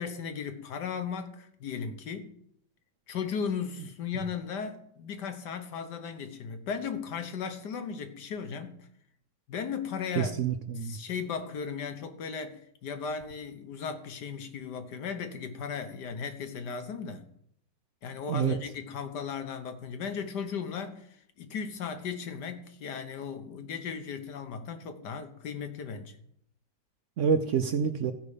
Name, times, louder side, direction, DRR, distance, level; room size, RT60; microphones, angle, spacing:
voice 1, 0.0-2.3 3.1-8.8 9.5-10.3 10.8-17.3 18.0-26.2, left 6 dB, 70° left, 1.6 m, -36 dB
voice 2, 10.1-11.0 18.3-18.5 27.2-28.1, right 7 dB, 65° right, 0.7 m, -27 dB
15.5 x 5.4 x 4.9 m
omnidirectional pair, 1.9 m